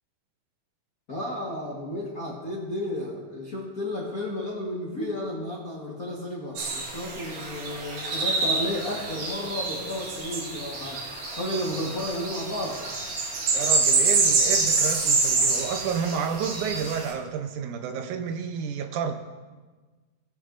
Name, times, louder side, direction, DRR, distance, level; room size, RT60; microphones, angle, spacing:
voice 1, 1.1-12.8, left 1 dB, 45° left, -4 dB, 1.3 m, -33 dB
sound 1, 6.6-17.1, right 3 dB, 65° right, 2.7 m, -26 dB
voice 2, 13.5-19.1, right 7 dB, 80° right, 6 dB, 2.2 m, -30 dB
21.0 x 8.1 x 2.6 m, 1.3 s
omnidirectional pair, 3.6 m